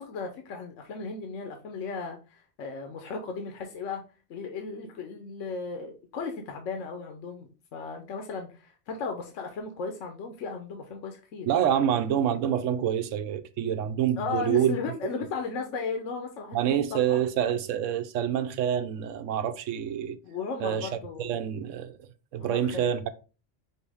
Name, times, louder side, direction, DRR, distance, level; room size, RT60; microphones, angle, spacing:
voice 1, 0.0-4.0 4.3-11.5 14.2-17.2 20.2-21.3 22.4-22.9, left 4 dB, 85° left, 1.1 m, -36 dB
voice 2, 11.5-15.0 16.5-20.2 20.6-20.9 21.2-22.0 22.3-23.1, right 9 dB, 85° right, 1.0 m, -27 dB
5.5 x 2.9 x 3.4 m
omnidirectional pair, 1.3 m